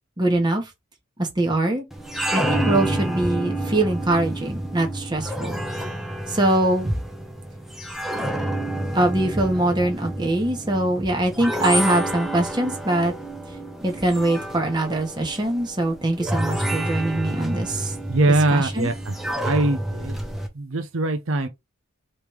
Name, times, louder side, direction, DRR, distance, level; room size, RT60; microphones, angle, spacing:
voice 1, 0.2-0.6 1.2-1.8 2.3-5.6 6.3-6.9 8.9-13.1 13.8-17.9 18.5-18.9, right 1 dB, 20° right, 1.3 m, -23 dB
Symponium disc player played with a fingernail, 1.9-20.5, right 1 dB, ahead, 0.8 m, -29 dB
voice 2, 18.1-19.1 19.4-20.2 20.6-21.5, right 2 dB, 75° right, 0.7 m, -22 dB
3.5 x 3.2 x 4.6 m
head